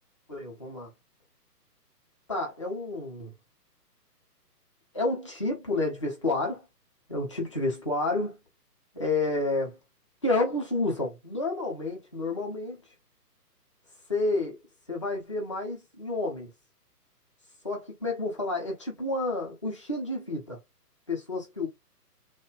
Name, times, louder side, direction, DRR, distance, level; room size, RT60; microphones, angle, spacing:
voice 1, 0.3-0.9 2.3-3.3 4.9-6.7 7.1-8.4 8.9-9.8 10.2-12.8 14.1-14.6 14.9-16.5 17.6-20.6 21.1-21.7, left 2 dB, 20° left, 0.5 m, -30 dB
3.1 x 2.1 x 2.3 m
figure-of-eight pair, 130°, 48 cm